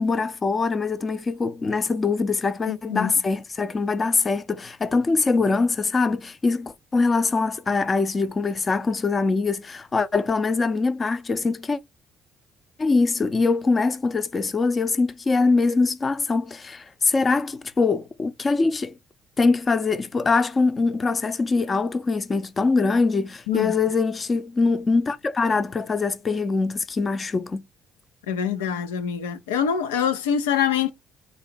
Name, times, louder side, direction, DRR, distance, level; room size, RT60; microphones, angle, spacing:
voice 1, 0.0-11.8 12.8-19.0 19.4-27.6, left 4 dB, 35° left, 0.6 m, -23 dB
voice 2, 2.7-3.1 23.5-23.7 28.3-30.9, left 8 dB, 90° left, 0.5 m, -24 dB
4.1 x 2.8 x 4.2 m
hypercardioid pair, 55°, 0 cm